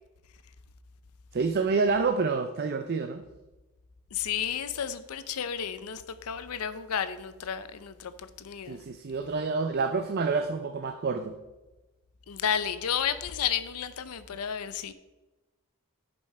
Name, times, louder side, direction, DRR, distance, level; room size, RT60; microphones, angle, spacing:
voice 1, 1.3-3.2 8.7-11.4, right 4 dB, 45° right, 0.5 m, -28 dB
voice 2, 4.1-8.8 12.3-14.9, left 8 dB, 80° left, 0.6 m, -32 dB
10.5 x 5.4 x 4.2 m
head